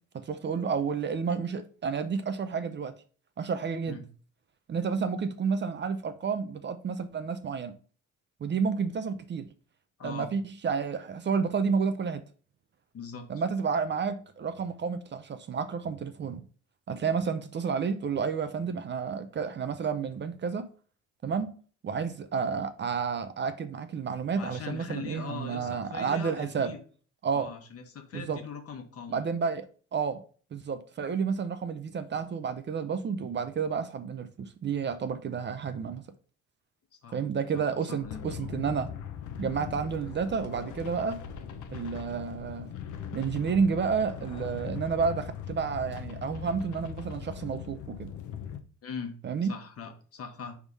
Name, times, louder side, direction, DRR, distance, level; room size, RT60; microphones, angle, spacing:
voice 1, 0.1-2.9 3.4-4.0 4.7-7.7 8.4-9.5 10.0-12.2 13.3-16.4 16.9-20.7 21.2-21.5 21.8-26.7 27.2-27.5 28.1-28.4 29.1-30.2 30.5-36.0 37.1-38.9 39.4-41.2 41.7-42.7 43.1-48.1 49.2-49.5, right 6 dB, 35° right, 0.6 m, -30 dB
voice 2, 12.9-13.3 24.3-26.8 27.3-29.2 37.0-37.2 37.5-38.5 48.8-49.1 49.5-50.5, left 6 dB, 50° left, 1.2 m, -41 dB
sound 1, 38.0-48.6, left 8 dB, 75° left, 0.8 m, -40 dB
4.8 x 3.6 x 5.4 m
cardioid pair, 120°, 30 cm